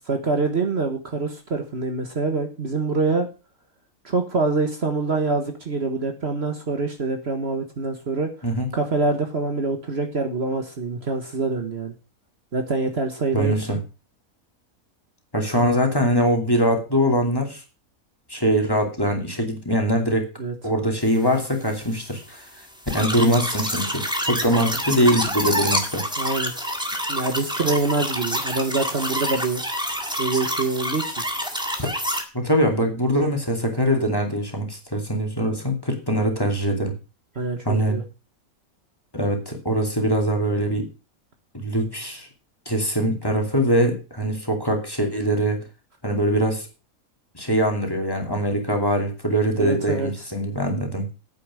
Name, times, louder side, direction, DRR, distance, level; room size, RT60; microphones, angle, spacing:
voice 1, 0.1-3.3 4.1-8.3 8.7-11.9 12.5-13.8 20.4-20.6 26.2-26.5 27.1-29.6 30.2-31.2 37.4-38.0 49.6-50.1, right 3 dB, 45° right, 5 dB, 1.6 m, -25 dB
voice 2, 13.3-13.8 15.3-17.6 18.3-20.3 20.6-22.5 22.9-26.0 31.8-31.9 32.3-36.9 37.6-38.0 39.1-40.8 41.5-42.3 42.7-45.6 46.0-46.7 47.3-51.1, equal, 15° left, 2 dB, 2.6 m, -22 dB
sound 1, 22.9-32.2, equal, 5° right, 1.7 m, -27 dB
9.4 x 8.5 x 6.2 m, 0.32 s
omnidirectional pair, 1.5 m